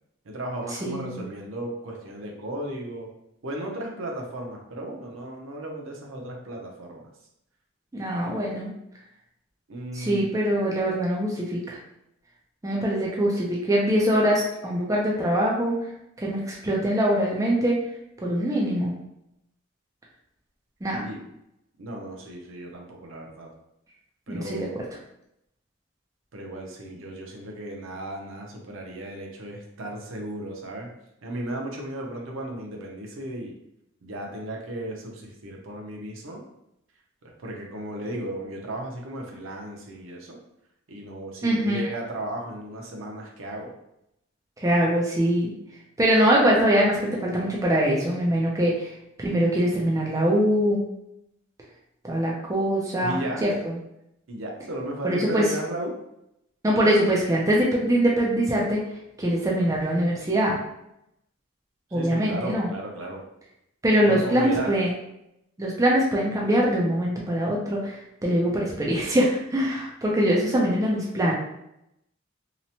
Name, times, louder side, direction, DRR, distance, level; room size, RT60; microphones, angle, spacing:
voice 1, 0.2-3.1 3.4-7.0 9.7-10.3 21.0-21.2 21.8-23.5 24.3-24.8 26.3-30.9 31.2-33.5 34.0-36.4 37.2-40.4 40.9-43.7 53.0-53.6 54.3-56.0 61.9-63.2 64.1-64.7, right 1 dB, 70° right, 0 dB, 0.6 m, -35 dB
voice 2, 0.8-1.2 7.9-8.7 9.9-11.8 12.6-15.7 16.2-17.8 18.2-18.9 20.8-21.1 24.3-24.7 41.4-41.8 44.6-45.5 46.0-48.9 49.2-50.9 52.0-53.5 55.0-55.5 56.6-58.8 59.2-60.6 61.9-62.7 63.8-64.9 65.6-71.3, equal, 15° right, -3 dB, 0.4 m, -23 dB
2.9 x 2.0 x 2.7 m, 0.82 s
head